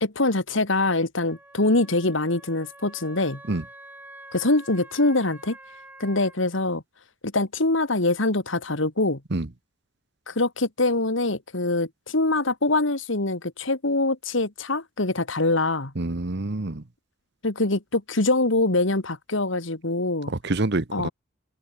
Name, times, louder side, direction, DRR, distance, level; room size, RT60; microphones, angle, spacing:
voice 1, 0.0-3.4 4.3-5.6 6.0-6.8 7.2-9.2 10.3-15.9 17.4-20.3 20.9-21.1, left 2 dB, 70° left, 2.3 m, -24 dB
Wind instrument woodwind instrument, 1.3-6.4, right 1 dB, 10° right, 4.0 m, -47 dB
voice 2, 16.0-16.8 20.3-21.1, right 2 dB, 55° right, 1.2 m, -26 dB
head